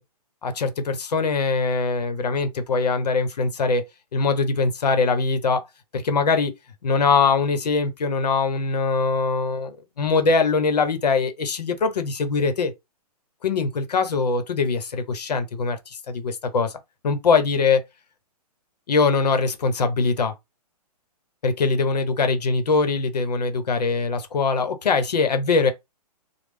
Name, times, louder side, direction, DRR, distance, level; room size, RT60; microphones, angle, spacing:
voice 1, 0.4-3.8 4.1-5.6 5.9-6.5 6.8-12.7 13.4-15.8 16.1-16.7 17.0-17.8 18.9-20.3 21.4-25.7, left 4 dB, 85° left, 1.0 m, -22 dB
3.2 x 2.3 x 3.4 m
hypercardioid pair, 150°, 20 cm